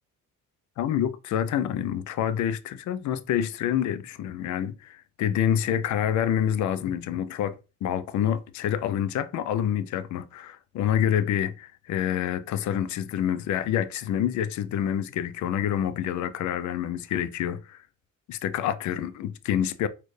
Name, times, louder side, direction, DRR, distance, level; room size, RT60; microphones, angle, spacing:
voice 1, 0.8-17.8 18.3-19.9, left 10 dB, 70° left, 0.5 m, -27 dB
4.3 x 2.4 x 3.2 m
cardioid pair, 90°, 30 cm